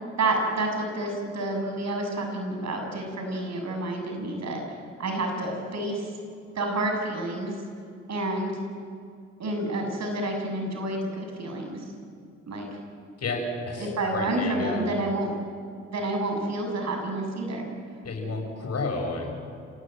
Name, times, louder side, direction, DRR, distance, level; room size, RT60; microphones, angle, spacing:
voice 1, 0.2-4.6 5.0-6.1 6.6-7.6 8.1-8.6 9.4-11.8 12.5-12.7 13.8-15.3 15.9-17.7, right 2 dB, 60° right, 3 dB, 7.4 m, -29 dB
voice 2, 13.2-14.9 18.0-19.3, left 3 dB, 55° left, 2 dB, 7.4 m, -31 dB
29.5 x 18.0 x 9.5 m, 2.3 s
supercardioid pair, 60°, 30 cm